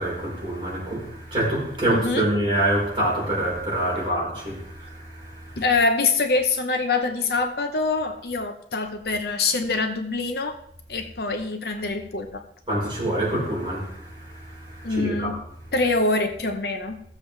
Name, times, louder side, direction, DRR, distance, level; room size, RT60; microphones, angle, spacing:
voice 1, 0.0-5.6 12.7-15.3, right 1 dB, 25° right, 4.7 m, -26 dB
voice 2, 1.9-2.3 5.6-10.6 10.9-12.4 14.8-15.4 15.7-17.0, left 3 dB, 60° left, 1.0 m, -24 dB
16.0 x 7.3 x 3.4 m
head